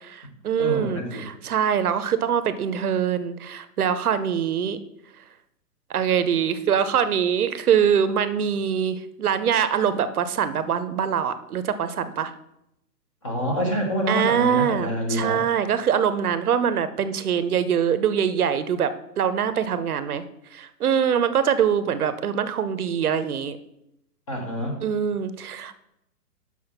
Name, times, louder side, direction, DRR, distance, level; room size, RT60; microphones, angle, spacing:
voice 1, 0.0-4.8 5.9-12.3 14.1-20.2 20.5-23.6 24.8-25.7, right 8 dB, 60° right, 12 dB, 0.7 m, -23 dB
voice 2, 0.6-1.3 13.2-15.4 24.3-24.8, equal, 20° left, 1 dB, 0.8 m, -27 dB
6.1 x 5.9 x 5.8 m, 0.82 s
hypercardioid pair, 170°, 49 cm